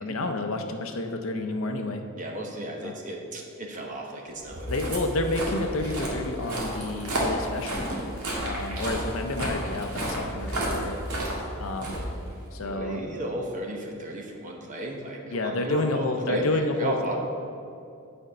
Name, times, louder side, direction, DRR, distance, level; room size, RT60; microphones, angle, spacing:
voice 1, 0.0-2.0 2.8-2.9 4.7-7.8 8.4-11.0 11.6-12.0 12.5-13.1 15.3-17.0, left 2 dB, 65° left, 5 dB, 0.6 m, -30 dB
voice 2, 2.1-4.7 12.6-17.1, right 1 dB, 35° right, 1 dB, 0.9 m, -34 dB
Walk footsteps, 4.4-12.7, right 1 dB, 80° right, 1.7 m, -32 dB
9.1 x 4.3 x 5.0 m, 2.6 s
head